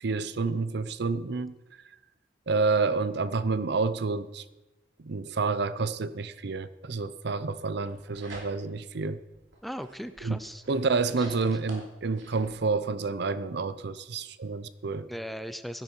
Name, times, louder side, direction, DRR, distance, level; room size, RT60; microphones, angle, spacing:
voice 1, 0.0-1.5 2.5-4.4 5.0-9.2 10.2-10.4 10.7-15.1, right 4 dB, 60° right, 0.6 m, -29 dB
sound 1, 7.7-8.9 9.3-12.6, right 2 dB, 85° right, 2.9 m, -48 dB
voice 2, 9.6-11.6 15.1-15.8, equal, ahead, 0.4 m, -39 dB
16.0 x 10.5 x 4.6 m
head